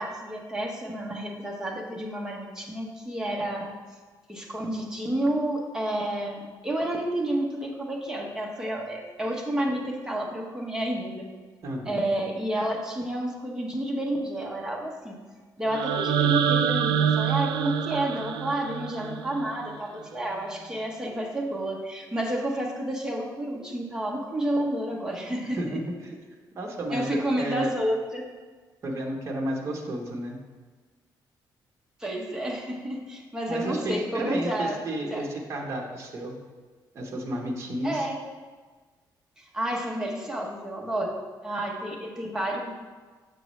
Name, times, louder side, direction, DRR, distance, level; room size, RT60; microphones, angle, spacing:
voice 1, 0.0-3.7 4.3-11.3 11.9-15.2 15.6-25.8 26.9-28.2 32.0-35.2 37.8-38.2 39.4-41.2 41.4-42.7, right 1 dB, 10° right, -1 dB, 0.8 m, -30 dB
voice 2, 11.6-12.0 25.5-26.1 26.5-27.7 28.8-30.4 33.5-36.4 36.9-38.1, right 1 dB, 40° right, 0 dB, 1.0 m, -32 dB
sound 1, 15.7-19.7, right 8 dB, 80° right, 0.4 m, -26 dB
6.7 x 6.0 x 3.1 m, 1.4 s
cardioid pair, 155°, 8 cm